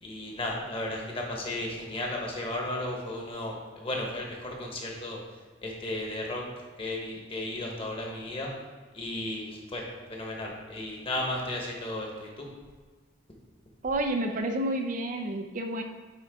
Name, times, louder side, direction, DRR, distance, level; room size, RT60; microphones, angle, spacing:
voice 1, 0.0-5.2 5.6-6.4 6.8-8.5 8.9-9.8 10.1-12.5, left 1 dB, 30° left, -1 dB, 1.1 m, -34 dB
voice 2, 13.8-15.8, right 1 dB, 45° right, 5 dB, 0.5 m, -30 dB
8.8 x 3.7 x 3.6 m, 1.4 s
head